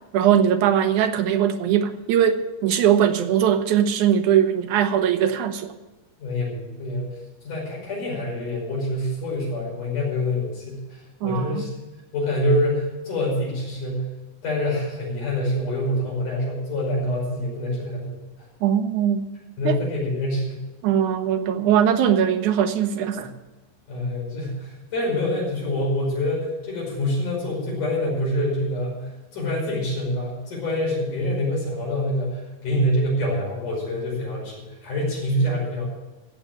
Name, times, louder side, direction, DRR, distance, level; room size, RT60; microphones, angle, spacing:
voice 1, 0.1-5.7 11.2-11.6 18.6-19.3 19.7-19.8 20.8-23.3, right 9 dB, 75° right, 7 dB, 2.4 m, -20 dB
voice 2, 6.2-7.2 7.4-11.7 12.1-14.1 14.4-18.2 19.6-20.6 23.9-35.9, left 1 dB, 85° left, -3 dB, 7.0 m, -26 dB
15.5 x 6.9 x 8.9 m, 1.1 s
omnidirectional pair, 3.6 m